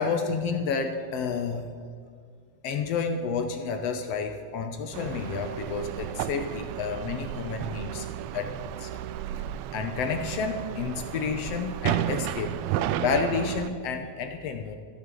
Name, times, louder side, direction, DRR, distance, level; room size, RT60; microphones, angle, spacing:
voice 1, 0.0-1.7 2.6-8.1 8.3-8.9 9.7-12.6 13.0-14.8, left 5 dB, 70° left, 6 dB, 1.6 m, -30 dB
sound 1, 4.9-13.7, right 11 dB, 80° right, 1.6 m, -33 dB
14.0 x 7.3 x 7.4 m, 2.2 s
omnidirectional pair, 3.5 m